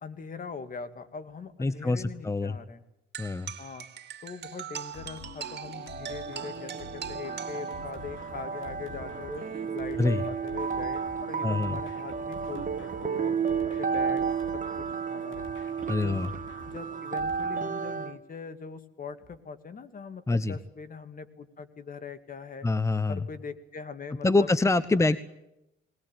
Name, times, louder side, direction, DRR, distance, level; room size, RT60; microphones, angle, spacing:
voice 1, 0.0-2.8 3.6-3.9 4.2-9.4 9.7-13.4 13.8-14.2 14.5-14.8 15.1-15.5 16.0-16.2 16.7-22.7 23.1-24.5, left 5 dB, 45° left, 11 dB, 2.4 m, -41 dB
voice 2, 1.6-2.6 3.2-3.5 10.0-10.2 11.4-11.8 15.9-16.3 20.3-20.6 22.6-23.2 24.2-25.2, left 3 dB, 15° left, 15 dB, 0.9 m, -25 dB
sound 1, 3.1-8.2, right 9 dB, 55° right, 2.6 m, -41 dB
sound 2, 4.9-17.4, left 4 dB, 75° left, 6.0 m, -48 dB
sound 3, 5.8-18.2, right 6 dB, 40° right, 2.0 m, -32 dB
20.5 x 20.0 x 9.1 m, 0.87 s
cardioid pair, 90°, 20 cm